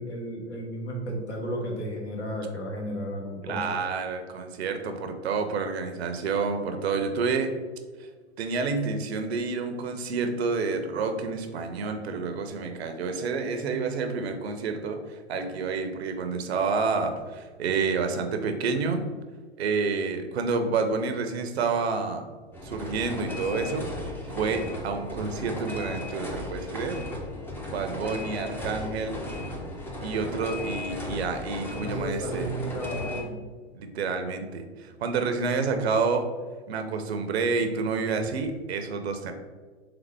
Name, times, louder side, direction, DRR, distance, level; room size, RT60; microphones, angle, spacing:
voice 1, 0.0-3.8 23.4-23.8 31.7-33.4, equal, 90° left, -1 dB, 1.4 m, -33 dB
voice 2, 3.4-7.6 8.0-8.1 8.4-19.1 19.6-22.2 22.6-23.9 24.3-27.0 27.7-29.2 30.0-32.5 33.7-36.3 36.7-39.3, right 4 dB, 70° right, 7 dB, 0.7 m, -29 dB
sound 1, 22.5-33.2, left 1 dB, 5° left, 0.4 m, -36 dB
4.0 x 3.5 x 3.4 m, 1.4 s
hypercardioid pair, 110°, 33 cm